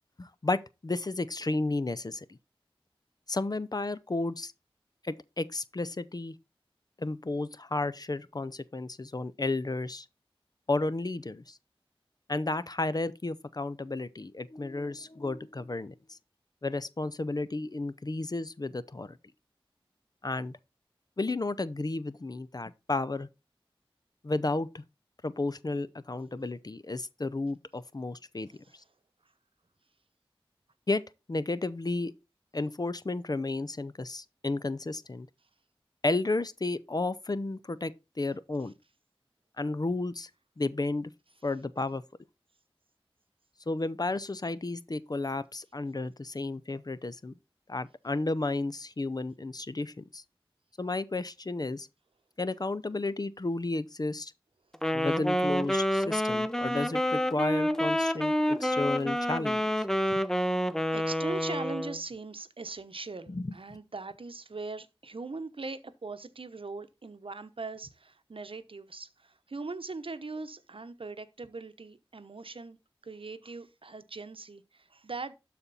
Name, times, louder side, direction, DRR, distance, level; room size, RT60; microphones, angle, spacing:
voice 1, 0.2-2.3 3.3-4.5 5.0-6.3 7.0-10.1 10.7-11.6 12.3-16.2 16.6-19.2 20.2-20.6 21.2-23.3 24.2-24.8 25.2-28.5 30.9-31.0 31.3-32.1 32.5-35.3 36.0-37.9 38.2-38.7 39.6-40.3 40.6-41.1 41.4-42.0 43.7-47.3 47.7-50.2 50.8-51.9 52.4-54.3 54.9-59.7 60.1-60.2 63.3-63.5, left 2 dB, 45° left, 0.6 m, -32 dB
voice 2, 28.5-28.8 57.9-58.3 60.1-60.6 60.9-72.8 73.0-75.3, right 3 dB, 65° right, 0.9 m, -41 dB
Wind instrument woodwind instrument, 54.7-62.0, equal, 5° left, 0.7 m, -28 dB
12.5 x 4.3 x 4.1 m
wide cardioid pair, 45°, 10 cm